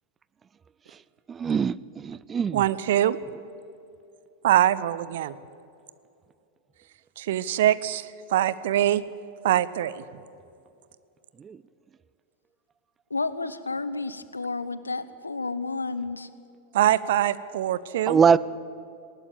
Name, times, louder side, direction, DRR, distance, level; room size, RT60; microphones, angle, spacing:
voice 1, 1.3-1.7 2.0-2.6 11.5-11.6 18.1-18.4, right 6 dB, 20° right, 20 dB, 0.5 m, -21 dB
voice 2, 2.5-3.2 4.4-5.3 7.2-9.0 9.4-10.0 16.7-18.2, right 12 dB, 55° right, 17 dB, 0.8 m, -23 dB
voice 3, 13.1-16.3, left 3 dB, 80° left, 14 dB, 1.0 m, -31 dB
19.5 x 18.5 x 8.8 m, 2.6 s
figure-of-eight pair, 90°, 0 cm